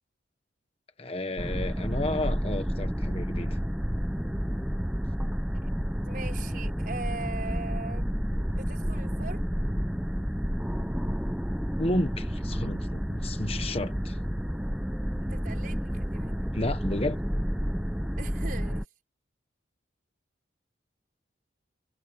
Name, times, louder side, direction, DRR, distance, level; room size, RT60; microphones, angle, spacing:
voice 1, 1.0-3.6 11.8-14.2 16.5-17.2, left 1 dB, 30° left, 1.2 m, -32 dB
sound 1, 1.4-18.8, equal, 5° right, 0.9 m, -30 dB
voice 2, 6.0-8.1 8.5-9.4 15.2-16.3 18.2-18.8, right 3 dB, 45° right, 5.9 m, -40 dB
head